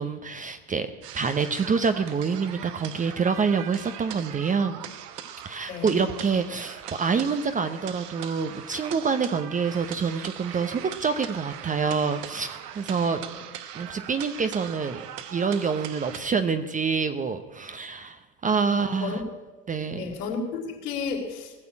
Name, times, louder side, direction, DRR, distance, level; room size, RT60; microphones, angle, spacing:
voice 1, 0.0-4.8 5.4-13.2 13.7-15.0 15.3-19.2 19.7-20.1, right 5 dB, 15° right, 10 dB, 0.7 m, -27 dB
sound 1, 1.0-16.2, right 10 dB, 75° right, 1.2 m, -40 dB
voice 2, 5.7-6.1 13.3-13.4 18.7-19.2 20.0-21.5, left 5 dB, 70° left, 1 dB, 3.6 m, -33 dB
18.5 x 6.9 x 8.5 m, 1.2 s
hypercardioid pair, 100°, 48 cm